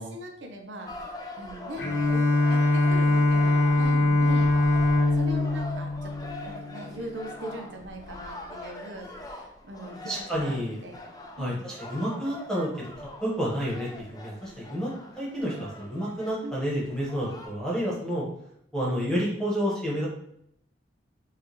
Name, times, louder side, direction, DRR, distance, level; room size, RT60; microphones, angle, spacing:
voice 1, 0.0-2.2 2.5-4.5 5.1-10.6 10.8-11.0 11.4-11.6 16.4-16.6 18.9-19.1, right 1 dB, 85° right, 2 dB, 0.7 m, -40 dB
sound 1, 0.9-17.5, left 1 dB, 20° left, 0.4 m, -43 dB
Bowed string instrument, 1.8-7.0, left 2 dB, 70° left, 0.8 m, -23 dB
voice 2, 10.0-10.8 11.4-12.9 13.2-14.9 15.1-18.2 18.7-20.1, equal, 5° left, -6 dB, 1.2 m, -30 dB
4.7 x 2.4 x 3.0 m, 0.73 s
head